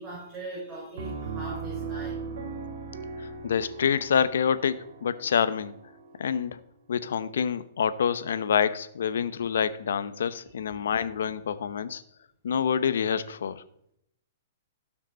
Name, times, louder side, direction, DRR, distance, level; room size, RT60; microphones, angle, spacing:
voice 1, 0.0-2.2 10.7-10.8, right 2 dB, 20° right, -6 dB, 4.8 m, -40 dB
Piano, 1.0-6.5, right 4 dB, 65° right, 1.8 m, -38 dB
voice 2, 3.2-5.7 6.2-6.6 6.9-12.0 12.4-13.6, left 7 dB, 80° left, 13 dB, 0.9 m, -27 dB
16.5 x 6.0 x 4.0 m, 0.72 s
hypercardioid pair, 155°, 0 cm